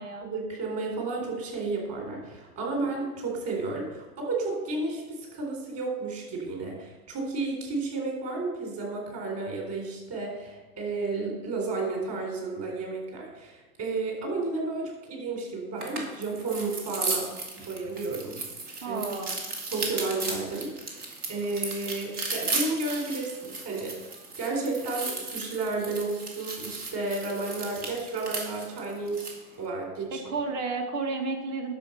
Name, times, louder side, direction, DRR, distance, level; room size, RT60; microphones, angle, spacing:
voice 1, 0.3-17.3 17.6-18.4 18.9-19.0 19.7-23.9 24.4-29.2 29.6-30.2, right 3 dB, 35° right, 0 dB, 4.1 m, -32 dB
sound 1, 15.8-29.4, right 3 dB, 80° right, 2.8 m, -35 dB
voice 2, 18.8-19.4 30.1-31.7, right 4 dB, 55° right, 4 dB, 2.2 m, -32 dB
10.5 x 6.8 x 5.8 m, 1.1 s
hypercardioid pair, 140°, 45 cm